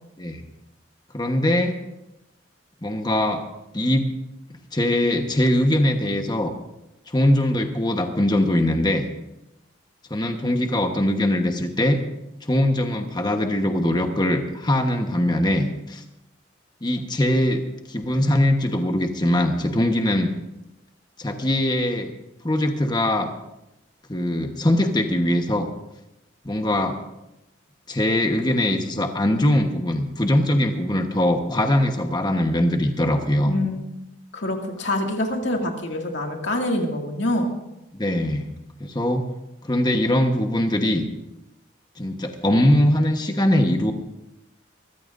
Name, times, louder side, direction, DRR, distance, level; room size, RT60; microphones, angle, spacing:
voice 1, 1.1-1.8 2.8-3.4 3.7-4.1 4.7-6.5 7.1-9.0 10.1-12.0 12.5-16.0 16.8-17.6 17.9-20.3 21.2-22.1 22.4-23.3 24.1-25.7 26.4-27.0 27.9-33.5 37.9-38.5 38.8-39.2 39.6-41.0 42.0-43.9, left 1 dB, 20° left, 4 dB, 1.1 m, -21 dB
voice 2, 33.5-33.8 34.3-37.5, left 1 dB, 60° left, 2 dB, 2.2 m, -25 dB
23.5 x 14.5 x 2.6 m, 0.92 s
head